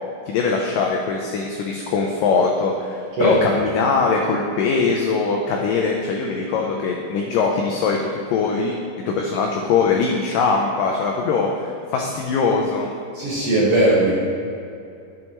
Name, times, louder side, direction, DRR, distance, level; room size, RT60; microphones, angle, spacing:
voice 1, 0.3-8.0 8.3-8.8 9.1-12.9, left 4 dB, 85° left, 0 dB, 1.9 m, -21 dB
voice 2, 13.1-14.1, right 1 dB, 55° right, -8 dB, 1.8 m, -18 dB
10.5 x 6.6 x 3.0 m, 2.5 s
omnidirectional pair, 4.5 m